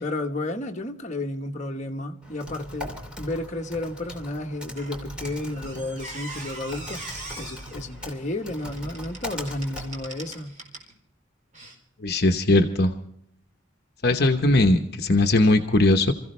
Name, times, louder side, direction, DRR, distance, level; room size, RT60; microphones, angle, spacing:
voice 1, 0.0-7.0 7.4-10.6, left 2 dB, 40° left, 1.3 m, -32 dB
Typing, 2.2-10.4, equal, 5° right, 2.9 m, -40 dB
Squeak, 4.8-10.9 11.5-11.7, right 2 dB, 40° right, 4.2 m, -41 dB
voice 2, 12.0-12.9 14.0-16.1, left 2 dB, 55° left, 1.0 m, -19 dB
27.0 x 15.0 x 3.3 m
head